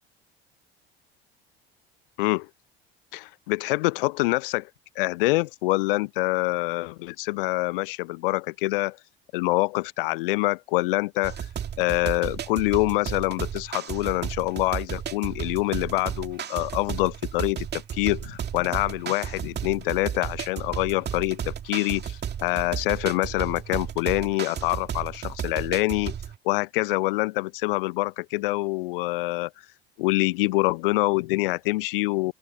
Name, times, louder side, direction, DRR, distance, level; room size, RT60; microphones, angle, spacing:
voice 1, 2.2-2.5 3.1-4.7 5.0-9.0 9.3-11.4 11.8-26.1 26.4-29.5 30.0-32.3, left 21 dB, 60° left, 0.6 m, -25 dB
sound 1, 11.2-26.4, right 9 dB, 35° right, 2.4 m, -34 dB
open air
figure-of-eight pair, 65°, 31 cm